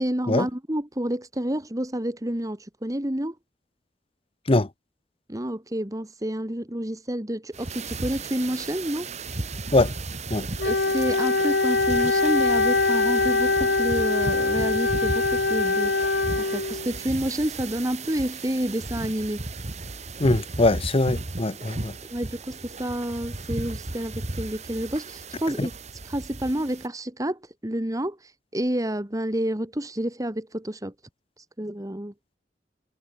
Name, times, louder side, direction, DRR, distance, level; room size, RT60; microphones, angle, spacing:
voice 1, 0.0-3.3 5.3-9.1 10.6-15.9 16.5-19.4 22.1-25.7 26.0-30.9 31.4-32.1, right 1 dB, 20° right, 2.1 m, -29 dB
sound 1, 7.5-26.9, right 3 dB, 40° right, 1.6 m, -35 dB
Wind instrument woodwind instrument, 10.6-17.0, left 3 dB, 75° left, 2.0 m, -23 dB
voice 2, 20.2-21.9 25.6-25.7, left 2 dB, 30° left, 0.9 m, -22 dB
head